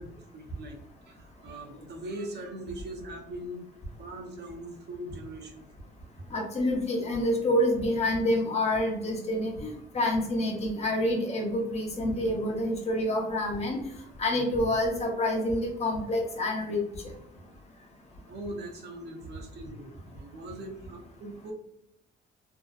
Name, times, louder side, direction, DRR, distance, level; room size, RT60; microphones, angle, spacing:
voice 1, 0.0-3.7 4.0-5.7 6.2-6.3 18.3-21.5, right 1 dB, 55° right, 3 dB, 0.6 m, -41 dB
voice 2, 6.3-13.8 14.2-16.8, left 1 dB, 35° left, 0 dB, 0.7 m, -27 dB
2.6 x 2.0 x 2.3 m, 0.76 s
cardioid pair, 90°, 20 cm